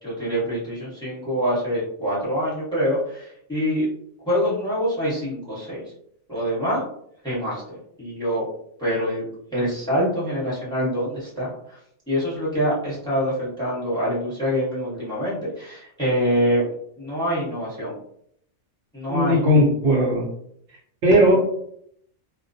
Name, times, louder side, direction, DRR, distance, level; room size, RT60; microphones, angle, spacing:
voice 1, 0.0-3.9 4.2-5.8 6.3-6.8 7.2-8.4 8.8-9.2 9.5-11.8 12.1-16.7 17.0-18.0 18.9-19.4, equal, 5° left, -7 dB, 0.9 m, -25 dB
voice 2, 19.1-20.2 21.0-21.4, equal, 65° right, -3 dB, 0.9 m, -17 dB
2.3 x 2.1 x 2.6 m, 0.69 s
omnidirectional pair, 1.3 m